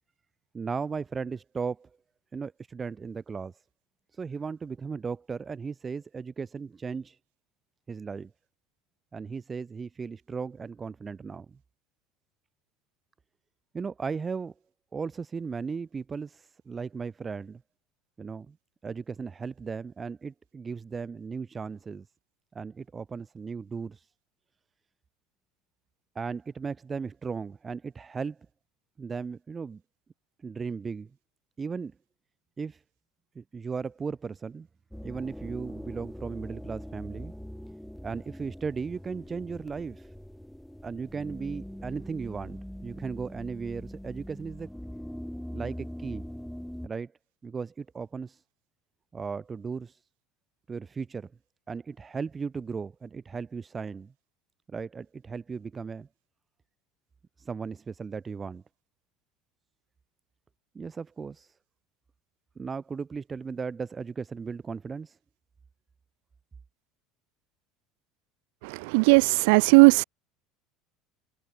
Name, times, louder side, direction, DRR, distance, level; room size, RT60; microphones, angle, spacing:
voice 1, 0.5-1.9 2.3-3.5 4.1-7.2 7.9-8.3 9.1-11.6 13.7-14.5 14.9-17.6 18.2-18.6 18.8-22.1 22.5-24.1 26.1-28.4 29.0-29.8 30.4-31.1 31.6-31.9 32.6-32.8 33.3-34.7 35.0-37.3 38.0-40.1 40.8-44.7 45.5-46.2 46.8-47.1 47.4-48.4 49.1-50.0 50.7-51.3 51.7-54.1 54.7-56.1 57.4-58.6 60.7-61.5 62.6-65.2, right 5 dB, 25° right, 1.4 m, -36 dB
sound 1, 34.9-46.9, equal, ahead, 1.5 m, -42 dB
voice 2, 68.6-70.0, right 31 dB, 75° right, 0.3 m, -18 dB
supercardioid pair, 110°, 0 cm